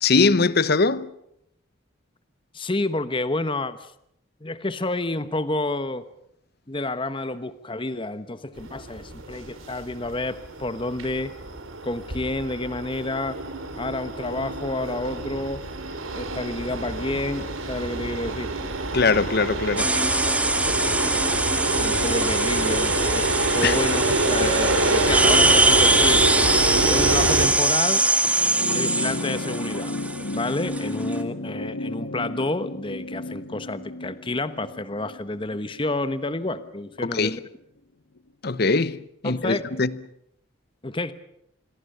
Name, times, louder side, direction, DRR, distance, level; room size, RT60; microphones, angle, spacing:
voice 1, 0.0-1.1 18.9-19.9 23.6-23.8 37.0-37.4 38.4-39.9, left 4 dB, 50° left, 0.9 m, -21 dB
voice 2, 2.5-3.9 4.4-6.0 6.7-11.3 11.8-13.4 13.8-15.6 16.1-18.5 21.8-26.2 26.9-28.0 28.7-29.9 30.3-37.4 39.2-39.6 40.8-41.1, left 2 dB, 25° left, 1.1 m, -29 dB
sound 1, 8.6-27.5, right 2 dB, 85° right, 3.4 m, -27 dB
sound 2, 19.8-31.2, right 2 dB, 5° right, 1.7 m, -22 dB
sound 3, 28.3-37.0 38.2-38.3, left 2 dB, 85° left, 1.1 m, -33 dB
27.0 x 22.0 x 6.8 m
head